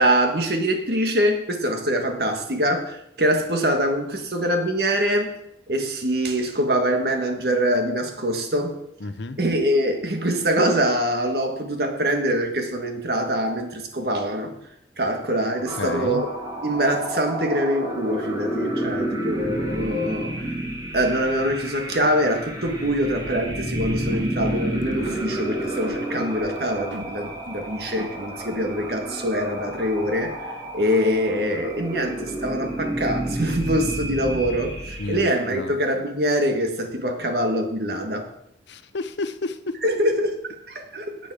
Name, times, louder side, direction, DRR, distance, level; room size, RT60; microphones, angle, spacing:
voice 1, 0.0-5.3 5.7-8.8 9.4-14.5 15.0-16.3 16.6-20.6 20.9-38.3 39.8-41.2, equal, 55° right, 4 dB, 1.7 m, -24 dB
voice 2, 9.0-9.4 15.8-16.2 35.0-35.7 38.7-39.8, left 3 dB, 75° left, 12 dB, 0.7 m, -31 dB
sound 1, 15.6-35.3, right 1 dB, 25° right, 2.1 m, -30 dB
sound 2, 24.0-24.5 24.8-25.2 25.8-26.0 26.4-26.6 26.9-27.1 27.6-27.7 28.0-28.1, right 2 dB, 85° right, 0.8 m, -36 dB
12.0 x 8.6 x 4.9 m, 0.76 s
head